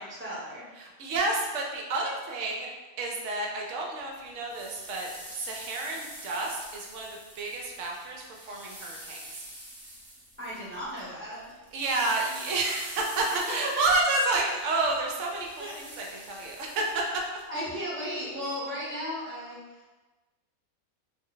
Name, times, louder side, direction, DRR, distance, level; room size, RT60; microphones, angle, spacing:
voice 1, 0.0-0.6 10.4-11.6 13.3-13.4 15.6-15.7 17.5-19.6, equal, 10° right, -9 dB, 0.7 m, -35 dB
voice 2, 0.8-2.7 3.0-7.1 7.3-9.2 11.7-17.2, right 2 dB, 65° right, 0 dB, 0.8 m, -30 dB
sound 1, 4.3-11.1 11.3-17.4, right 1 dB, 30° right, 1.0 m, -46 dB
2.6 x 2.0 x 3.8 m, 1.2 s
omnidirectional pair, 1.5 m